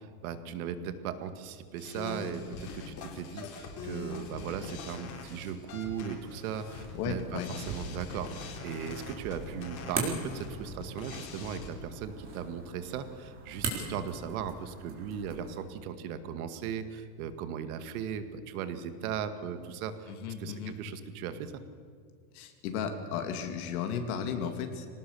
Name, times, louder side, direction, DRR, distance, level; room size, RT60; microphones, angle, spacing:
voice 1, 0.0-20.1 20.4-21.6, right 8 dB, 65° right, 10 dB, 2.1 m, -38 dB
sound 1, 1.8-11.7, left 5 dB, 40° left, 4.0 m, -43 dB
sound 2, 6.4-15.6, right 4 dB, 25° right, 4.2 m, -41 dB
voice 2, 6.9-7.5 13.8-13.9 20.1-20.8 22.3-24.9, left 7 dB, 70° left, 5 dB, 2.9 m, -35 dB
24.0 x 19.0 x 7.0 m, 2.1 s
supercardioid pair, 160°, 46 cm